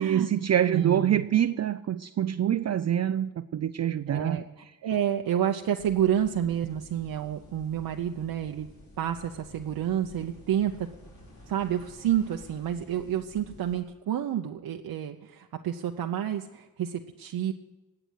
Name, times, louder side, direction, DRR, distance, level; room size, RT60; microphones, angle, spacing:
voice 1, 0.0-4.4, right 10 dB, 45° right, 11 dB, 0.4 m, -25 dB
voice 2, 0.7-1.3 4.1-8.7 9.0-10.9 11.5-17.5, right 10 dB, 85° right, 3 dB, 0.8 m, -29 dB
sound 1, 5.8-13.8, left 1 dB, 70° left, 4.9 m, -51 dB
19.5 x 7.9 x 6.3 m, 1.1 s
cardioid pair, 90°, 36 cm